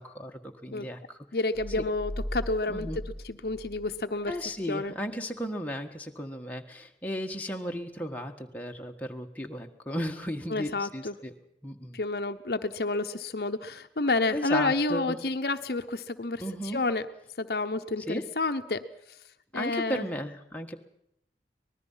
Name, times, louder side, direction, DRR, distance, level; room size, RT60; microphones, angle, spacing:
voice 1, 0.0-1.2 1.8-1.9 2.7-3.0 4.3-11.3 11.6-12.0 14.3-15.2 16.4-16.8 18.1-18.3 19.5-20.8, equal, 10° left, 2 dB, 1.5 m, -35 dB
voice 2, 1.3-4.4 4.7-4.9 10.5-11.1 11.9-16.4 16.7-17.1 17.4-18.9 19.5-20.1, left 3 dB, 65° left, 9 dB, 0.9 m, -30 dB
sound 1, 1.5-4.5, equal, 35° right, 2.5 m, -39 dB
24.5 x 20.0 x 5.7 m, 0.77 s
head